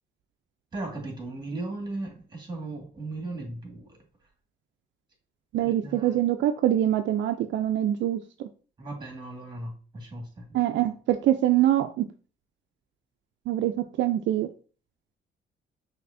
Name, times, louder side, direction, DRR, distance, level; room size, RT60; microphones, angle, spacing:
voice 1, 0.7-4.0 5.6-6.2 8.8-10.6, right 2 dB, 20° right, 2 dB, 1.8 m, -37 dB
voice 2, 5.5-8.5 10.5-12.1 13.5-13.7 14.0-14.5, right 12 dB, 70° right, 7 dB, 0.4 m, -24 dB
5.9 x 2.8 x 2.6 m, 0.38 s
cardioid pair, 90°, 20 cm